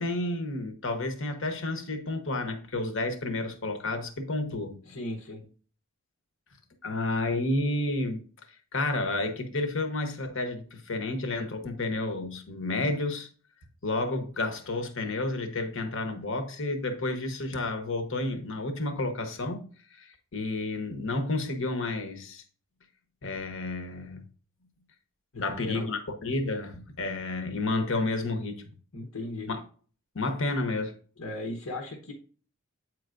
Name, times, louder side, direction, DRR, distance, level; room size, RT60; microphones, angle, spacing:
voice 1, 0.0-4.8 6.8-8.2 8.7-13.3 13.8-19.6 19.9-22.4 23.2-24.2 25.4-28.6 29.5-29.6 30.1-30.9, left 2 dB, 60° left, 1.0 m, -31 dB
voice 2, 4.8-5.5 25.3-25.9 28.9-29.5 31.2-32.1, left 2 dB, 80° left, 1.1 m, -37 dB
8.3 x 4.6 x 2.5 m
head